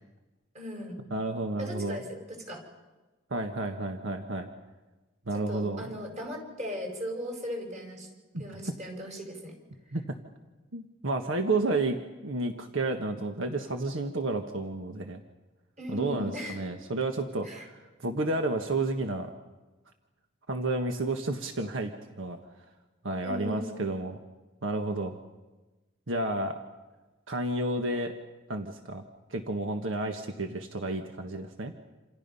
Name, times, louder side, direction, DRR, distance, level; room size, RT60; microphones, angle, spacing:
voice 1, 0.5-1.0 1.6-2.6 5.3-8.1 8.4-9.6 15.8-16.6 17.4-17.7 23.2-23.8, equal, 35° right, 3 dB, 5.5 m, -37 dB
voice 2, 1.1-2.0 3.3-4.5 5.3-5.9 8.3-8.4 9.9-10.2 10.7-15.2 15.9-19.3 20.5-22.4 23.0-24.2 24.6-25.2 26.1-26.6 27.3-28.1 28.5-29.0 29.3-31.7, right 2 dB, 75° right, 5 dB, 1.5 m, -31 dB
28.0 x 28.0 x 5.6 m, 1.2 s
head